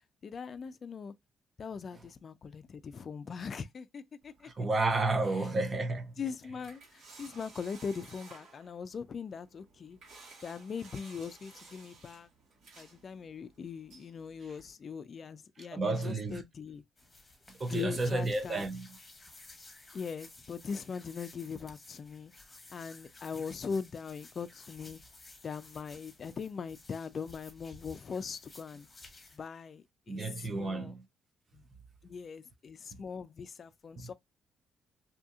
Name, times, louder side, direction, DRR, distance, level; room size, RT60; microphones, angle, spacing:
voice 1, 0.2-1.1 1.6-4.5 6.2-10.0 10.4-12.3 12.8-16.8 17.7-18.7 19.9-22.3 22.7-25.0 25.4-28.9 29.3-30.2 30.5-31.0 31.5-31.6 32.0-34.1, left 6 dB, 45° left, 0.3 m, -40 dB
sound 1, 4.2-14.7, right 3 dB, 80° right, 1.4 m, -57 dB
voice 2, 4.4-6.1 15.7-16.4 17.6-18.9 30.1-31.0 34.0-34.1, right 2 dB, 40° right, 0.6 m, -31 dB
sound 2, 17.0-29.4, left 2 dB, 20° left, 0.9 m, -55 dB
2.7 x 2.7 x 2.3 m
cardioid pair, 90°, 0 cm